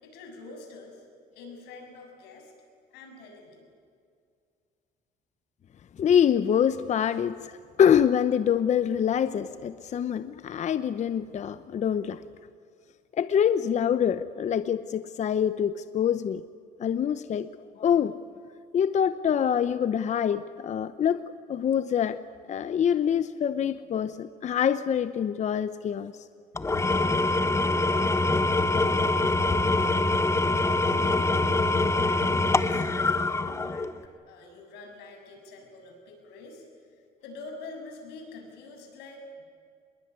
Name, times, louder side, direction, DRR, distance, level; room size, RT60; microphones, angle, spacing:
voice 1, 0.0-1.0 1.3-2.5 2.9-3.7 30.9-31.5 31.9-33.9 34.3-36.7 37.2-39.4, left 3 dB, 90° left, 3 dB, 7.0 m, -45 dB
voice 2, 6.0-12.2 13.2-16.4 16.8-17.5 17.8-18.2 18.7-22.2 22.5-26.1, left 8 dB, 45° left, 12 dB, 0.8 m, -25 dB
Engine / Tools, 26.6-34.0, left 2 dB, 15° left, 1.2 m, -24 dB
26.5 x 21.5 x 9.7 m, 2.2 s
cardioid pair, 110°, 17 cm